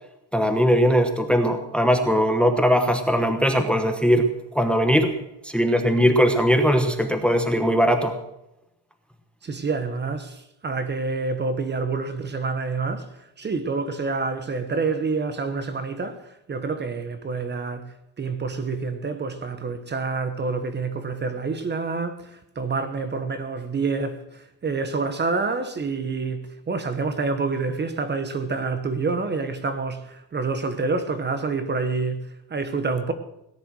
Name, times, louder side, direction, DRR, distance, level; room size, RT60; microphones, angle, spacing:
voice 1, 0.3-4.3 4.5-5.1 5.4-8.2, equal, 5° left, 1.0 m, -20 dB
voice 2, 9.4-33.1, right 4 dB, 25° right, 1.1 m, -28 dB
18.0 x 10.5 x 6.3 m
cardioid pair, 160°, 41 cm